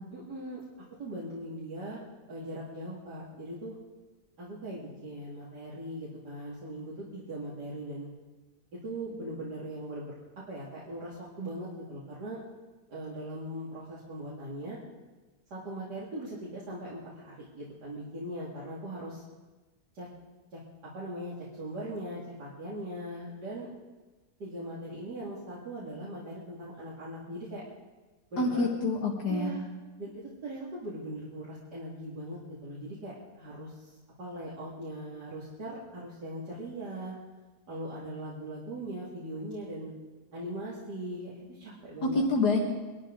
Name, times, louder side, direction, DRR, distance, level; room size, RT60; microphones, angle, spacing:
voice 1, 0.1-0.6 1.0-2.0 2.3-3.8 4.4-8.1 8.8-10.2 10.5-12.4 12.9-14.8 15.5-19.2 19.9-20.1 20.5-20.6 20.9-23.7 24.4-27.6 28.3-28.7 29.3-29.6 30.0-30.1 30.4-37.1 37.7-39.9 40.3-42.2, right 1 dB, 80° right, -8 dB, 3.0 m, -40 dB
voice 2, 28.4-29.5 42.0-42.6, left 3 dB, 75° left, -2 dB, 2.3 m, -27 dB
23.5 x 12.5 x 3.9 m, 1.2 s
omnidirectional pair, 1.7 m